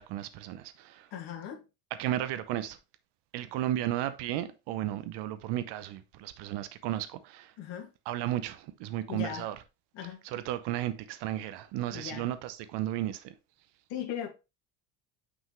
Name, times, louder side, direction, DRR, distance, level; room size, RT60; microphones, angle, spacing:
voice 1, 0.0-1.1 2.0-2.8 3.3-7.5 8.1-9.6 10.2-13.3, right 13 dB, 70° right, 0.9 m, -34 dB
voice 2, 1.1-1.6 7.6-7.9 9.1-9.5 9.9-10.2 11.9-12.3 13.9-14.3, left 9 dB, 65° left, 2.0 m, -38 dB
6.2 x 5.5 x 3.1 m
supercardioid pair, 115°, 43 cm